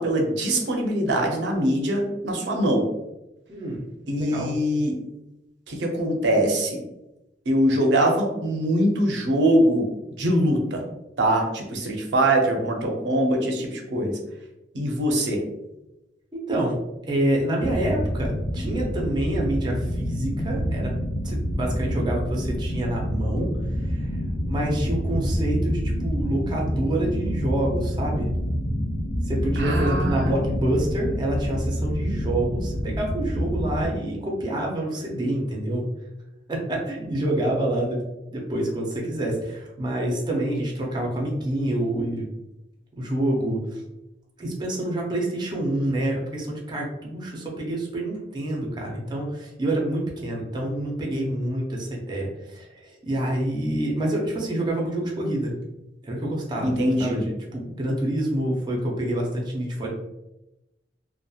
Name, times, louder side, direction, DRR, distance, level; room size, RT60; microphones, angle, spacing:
voice 1, 0.0-2.9 4.1-4.9 5.7-6.8 7.5-9.9 10.2-10.8 11.2-14.2 14.7-15.4 29.6-30.3 56.6-57.2, right 1 dB, 85° right, 1 dB, 0.6 m, -23 dB
voice 2, 3.5-3.8 4.2-4.5 16.3-16.8 17.1-20.9 21.2-23.5 23.7-24.2 24.5-28.3 29.2-35.9 36.5-38.0 38.3-42.2 43.0-43.8 44.4-55.5 56.0-59.9, right 1 dB, 25° right, -2 dB, 0.5 m, -27 dB
sound 1, 17.6-33.9, equal, 65° left, 0.5 m, -27 dB
2.8 x 2.1 x 2.3 m, 0.93 s
head